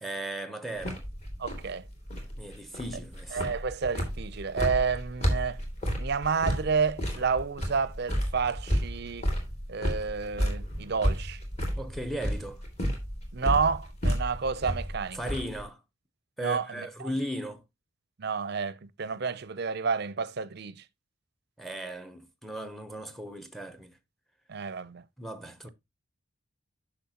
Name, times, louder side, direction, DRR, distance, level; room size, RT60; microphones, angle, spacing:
voice 1, 0.0-1.0 2.4-3.6 11.8-12.6 15.1-15.8 16.4-17.6 21.6-23.9 25.2-25.7, right 1 dB, ahead, 0.7 m, -37 dB
sound 1, 0.8-15.6, equal, 30° left, 2.5 m, -32 dB
voice 2, 1.4-1.9 3.3-5.6 6.0-9.3 9.7-11.4 13.3-15.2 16.4-17.1 18.2-20.8 24.5-25.0, right 5 dB, 50° right, 0.5 m, -30 dB
10.0 x 6.2 x 2.8 m
head